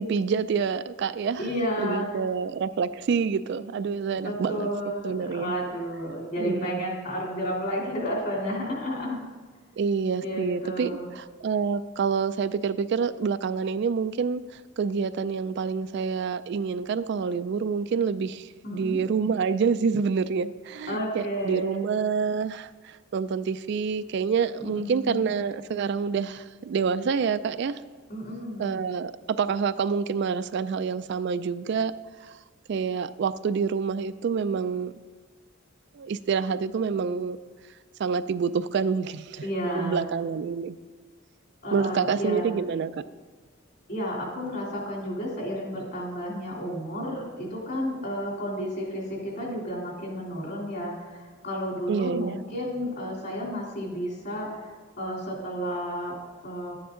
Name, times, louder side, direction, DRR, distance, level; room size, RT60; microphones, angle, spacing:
voice 1, 0.0-1.4 1.8-4.7 5.0-5.5 6.4-6.8 9.8-10.9 11.2-27.8 28.6-31.9 32.2-32.4 32.7-34.9 35.9-37.4 38.0-39.4 39.8-40.8 41.7-42.9 51.9-52.4, right 6 dB, 55° right, 13 dB, 0.3 m, -27 dB
voice 2, 1.4-2.1 4.2-9.2 10.2-11.1 18.6-19.0 20.9-21.8 24.6-25.2 28.1-28.7 39.4-40.0 41.6-42.6 43.9-56.2 56.4-56.8, equal, 50° left, -2 dB, 3.1 m, -32 dB
11.5 x 9.3 x 3.8 m, 1.4 s
head